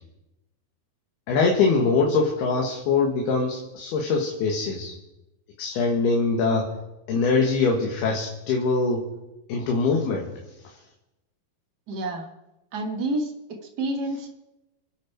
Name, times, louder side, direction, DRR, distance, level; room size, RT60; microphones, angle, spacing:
voice 1, 1.3-4.9 5.6-6.7 7.1-9.1 9.5-10.3, left 4 dB, 90° left, 0 dB, 3.6 m, -23 dB
voice 2, 11.9-12.3 12.7-14.3, right 2 dB, 90° right, 2 dB, 0.9 m, -29 dB
26.5 x 9.3 x 4.6 m, 0.94 s
omnidirectional pair, 4.4 m